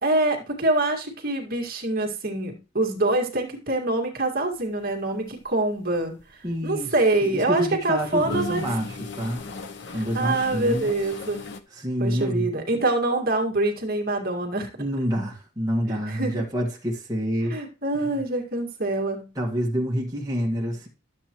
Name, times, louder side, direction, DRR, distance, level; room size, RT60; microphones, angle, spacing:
voice 1, 0.0-6.1 6.6-8.6 9.9-11.4 12.0-14.8 15.9-16.4 17.5-19.3, right 2 dB, 45° right, 2.0 m, -25 dB
sound 1, 5.2-5.5 5.9-7.3 7.7-11.6, left 3 dB, 55° left, 0.8 m, -37 dB
voice 2, 6.4-7.0 7.2-9.4 9.9-11.0 11.7-12.5 14.8-17.6 18.0-18.2 19.4-20.9, equal, 20° right, 1.8 m, -27 dB
12.5 x 7.5 x 3.0 m
head